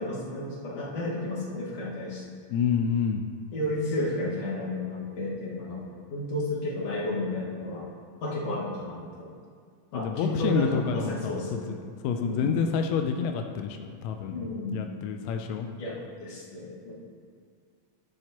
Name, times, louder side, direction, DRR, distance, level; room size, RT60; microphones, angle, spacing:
voice 1, 0.0-2.2 3.5-5.8 6.1-7.9 8.2-9.3 9.9-11.8 12.2-12.5 14.3-14.9 15.2-15.3 15.8-16.9, left 1 dB, 55° left, -5 dB, 2.6 m, -32 dB
voice 2, 2.5-3.2 9.9-11.6 12.0-15.7, left 6 dB, 85° left, 5 dB, 1.5 m, -28 dB
10.0 x 9.1 x 2.9 m, 2.1 s
omnidirectional pair, 3.7 m